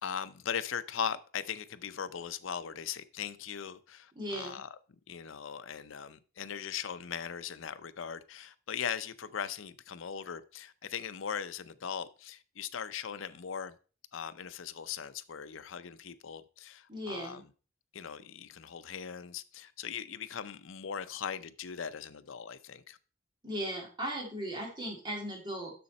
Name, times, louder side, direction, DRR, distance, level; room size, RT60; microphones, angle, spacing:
voice 1, 0.0-13.8 14.1-17.5 17.9-23.0, left 7 dB, 75° left, 0.6 m, -39 dB
voice 2, 4.2-4.6 16.9-17.4 23.4-25.7, right 1 dB, 25° right, 2.4 m, -37 dB
6.9 x 6.5 x 4.2 m
head